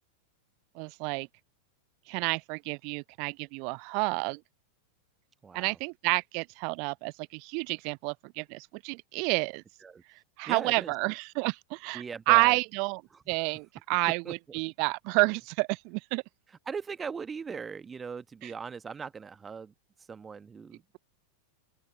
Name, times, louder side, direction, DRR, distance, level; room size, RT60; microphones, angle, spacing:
voice 1, 0.7-1.3 2.1-4.4 5.5-9.6 10.4-13.0 13.3-16.2, right 35 dB, 45° right, 0.7 m, -29 dB
voice 2, 5.4-5.8 9.8-10.0 10.5-10.9 11.9-12.6 13.1-13.3 14.2-14.6 16.7-20.8, right 5 dB, 15° right, 1.2 m, -40 dB
open air
figure-of-eight pair, 90°, 0 cm